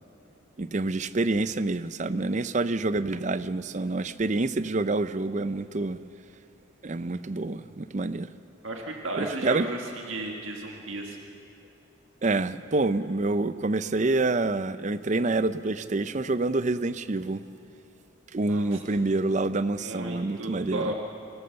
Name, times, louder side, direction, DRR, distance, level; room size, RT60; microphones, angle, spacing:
voice 1, 0.6-6.0 6.8-8.3 9.1-9.7 12.2-17.4 18.3-20.9, right 2 dB, 35° right, 0.5 m, -27 dB
voice 2, 8.6-11.2 18.5-19.1 19.8-20.9, right 2 dB, 75° right, 1.7 m, -34 dB
24.5 x 18.0 x 6.9 m
head